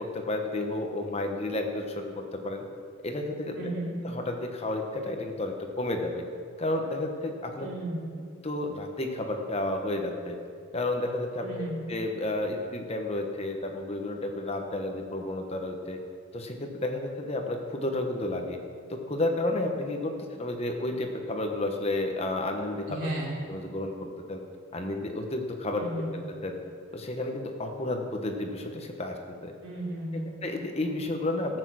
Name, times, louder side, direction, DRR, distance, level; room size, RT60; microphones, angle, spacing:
voice 1, 0.0-2.6 3.0-3.7 4.1-6.2 6.6-7.7 8.4-10.4 10.7-16.0 16.3-18.6 18.9-23.1 23.5-24.4 24.7-25.8 26.1-26.6 26.9-29.2 29.4-29.5 30.4-31.6, left 2 dB, 30° left, 3 dB, 1.1 m, -31 dB
voice 2, 3.6-3.9 7.6-8.0 11.4-11.8 22.9-23.3 25.8-26.1 29.6-30.3, right 1 dB, 80° right, -4 dB, 3.4 m, -34 dB
13.5 x 8.3 x 6.3 m, 2.2 s
head